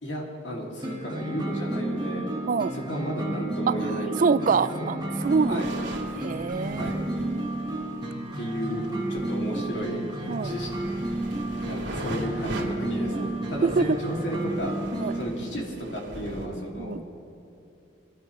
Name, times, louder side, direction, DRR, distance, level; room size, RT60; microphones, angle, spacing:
voice 1, 0.0-2.3 2.7-4.3 4.7-4.9 5.5-5.7 6.7-7.0 8.3-11.2 11.6-14.7 15.2-15.6 15.9-16.9, equal, 75° left, -2 dB, 2.5 m, -33 dB
sound 1, 0.8-15.2, right 1 dB, 25° right, 1.4 m, -32 dB
voice 2, 3.7-5.8 6.2-7.5 10.3-10.6 13.1-13.3 13.6-14.0 14.9-15.2 16.8-17.0, right 5 dB, 45° right, 15 dB, 0.3 m, -26 dB
sound 2, 5.0-16.5, right 1 dB, 85° right, 2.6 m, -41 dB
23.5 x 12.5 x 3.2 m, 2.6 s
head